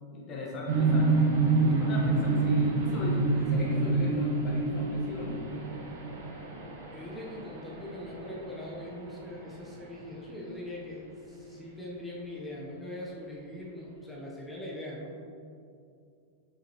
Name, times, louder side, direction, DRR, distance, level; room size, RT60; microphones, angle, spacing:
voice 1, 0.1-1.1 1.6-5.4, left 2 dB, 20° left, -3 dB, 1.2 m, -38 dB
sound 1, 0.7-9.6, right 3 dB, 65° right, 1.3 m, -28 dB
voice 2, 6.9-15.3, left 1 dB, 5° left, -4 dB, 0.8 m, -41 dB
7.1 x 6.1 x 2.9 m, 2.6 s
supercardioid pair, 180°, 0 cm